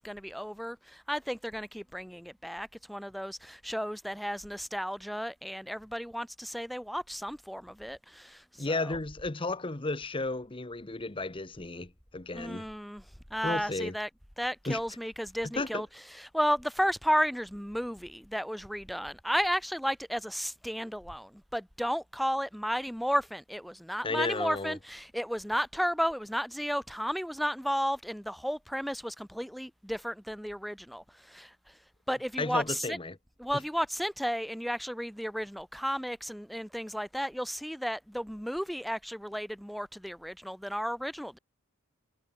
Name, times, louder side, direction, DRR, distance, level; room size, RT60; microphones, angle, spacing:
voice 1, 0.0-9.0 12.3-13.0 13.3-14.1 14.4-15.9 16.3-31.5 32.1-33.0 33.4-41.4, equal, ahead, 1.3 m, -33 dB
voice 2, 8.6-12.6 13.4-13.9 14.7-14.8 15.5-15.8 24.0-24.8 32.4-33.2, left 2 dB, 25° left, 1.0 m, -33 dB
head